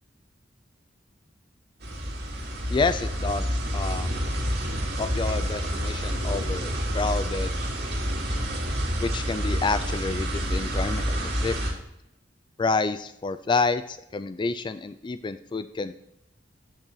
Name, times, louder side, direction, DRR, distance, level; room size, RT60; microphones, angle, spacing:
sound 1, 1.8-11.7, equal, 60° right, 2.3 m, -28 dB
voice 1, 2.7-4.2 5.0-7.6 8.3-8.6 9.0-11.2 11.4-11.5 12.6-16.0, left 4 dB, 25° left, 12 dB, 0.3 m, -29 dB
8.2 x 7.2 x 3.9 m, 0.83 s
head